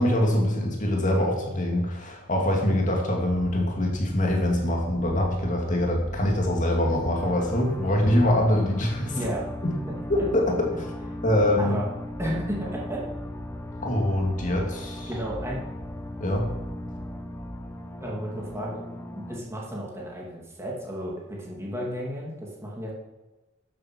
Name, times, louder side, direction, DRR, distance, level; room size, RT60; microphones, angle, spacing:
voice 1, 0.0-9.2 9.6-9.7 10.1-10.7 11.2-11.8 13.8-15.1 16.2-16.5, left 1 dB, 40° left, 0 dB, 2.4 m, -24 dB
sound 1, 3.3-18.7 19.5-19.6, equal, 35° right, 2.1 m, -42 dB
sound 2, 7.1-19.4, left 1 dB, 15° left, 0.9 m, -38 dB
voice 2, 9.1-9.5 9.9-10.0 11.6-11.9 12.2-13.1 15.1-15.6 18.0-22.9, equal, 15° right, -3 dB, 2.6 m, -33 dB
12.5 x 7.6 x 6.1 m, 1.1 s
head